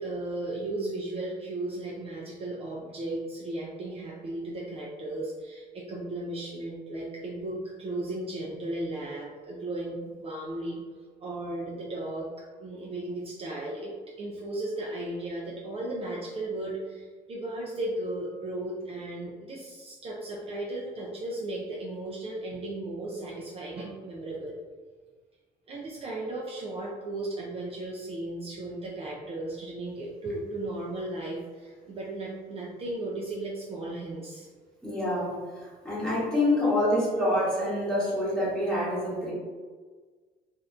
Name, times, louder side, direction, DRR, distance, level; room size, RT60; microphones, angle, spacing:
voice 1, 0.0-10.8 11.2-12.3 12.6-13.9 14.2-24.6 25.7-34.5, right 2 dB, 35° right, -4 dB, 0.4 m, -35 dB
voice 2, 34.8-35.3 35.8-39.3, left 1 dB, 5° left, -9 dB, 1.1 m, -26 dB
2.4 x 2.1 x 2.4 m, 1.5 s
cardioid pair, 110°, 17 cm